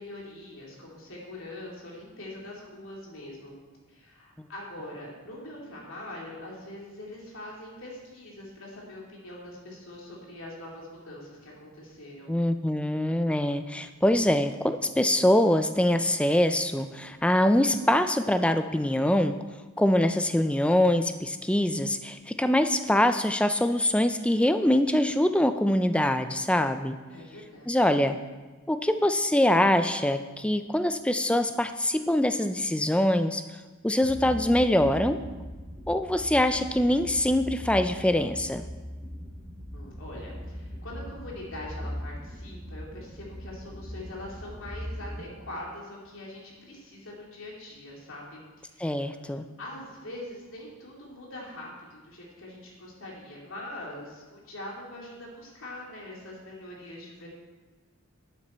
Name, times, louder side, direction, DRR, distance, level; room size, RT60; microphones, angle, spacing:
voice 1, 0.0-3.5 3.9-12.3 27.1-27.9 39.7-57.3, left 1 dB, 65° left, -3 dB, 3.0 m, -43 dB
voice 2, 12.3-19.4 19.8-27.0 27.7-28.2 28.7-33.4 33.8-35.2 35.9-38.6 48.8-49.5, left 1 dB, 5° left, 9 dB, 0.4 m, -24 dB
sound 1, 34.0-45.3, equal, 10° right, 2.4 m, -40 dB
11.5 x 9.2 x 4.4 m, 1.3 s
head